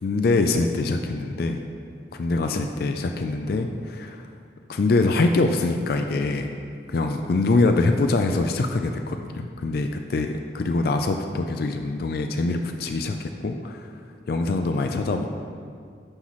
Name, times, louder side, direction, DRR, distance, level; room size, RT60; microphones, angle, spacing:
voice 1, 0.0-1.6 2.1-4.3 4.7-6.5 6.9-13.9 14.3-15.3, left 3 dB, 55° left, 5 dB, 0.4 m, -24 dB
9.7 x 5.7 x 3.1 m, 2.2 s
head